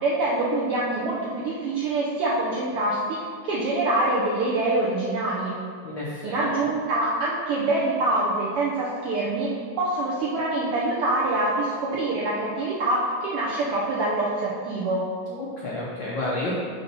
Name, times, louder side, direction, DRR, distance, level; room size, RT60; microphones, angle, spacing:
voice 1, 0.0-3.2 3.4-5.6 6.2-9.5 9.8-15.1, right 2 dB, 75° right, -6 dB, 1.3 m, -25 dB
voice 2, 5.8-6.4 15.3-16.5, left 2 dB, 80° left, -6 dB, 1.0 m, -31 dB
5.7 x 4.0 x 5.4 m, 2.1 s
omnidirectional pair, 3.4 m